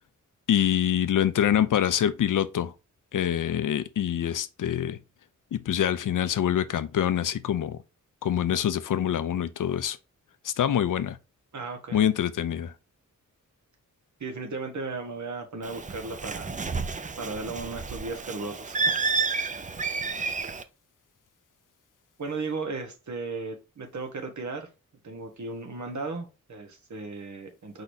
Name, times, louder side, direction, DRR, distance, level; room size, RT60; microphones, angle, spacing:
voice 1, 0.5-2.7 3.1-5.0 5.5-7.8 8.2-10.0 10.4-11.2 11.9-12.7 20.2-20.3, left 10 dB, 75° left, 0.5 m, -25 dB
voice 2, 11.5-12.0 14.2-16.5 17.2-18.8 22.2-24.7 25.0-27.8, right 3 dB, 60° right, 1.2 m, -35 dB
Bird, 15.6-20.6, right 4 dB, 25° right, 0.4 m, -30 dB
4.8 x 4.0 x 2.7 m
wide cardioid pair, 155°, 32 cm